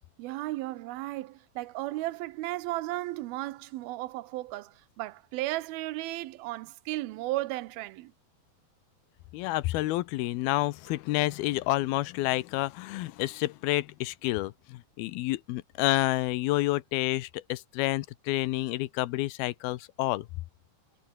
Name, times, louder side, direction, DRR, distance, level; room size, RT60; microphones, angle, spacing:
voice 1, 0.2-8.1, right 17 dB, 85° right, 2.7 m, -35 dB
voice 2, 9.3-20.3, left 18 dB, 90° left, 2.7 m, -29 dB
omnidirectional pair, 4.3 m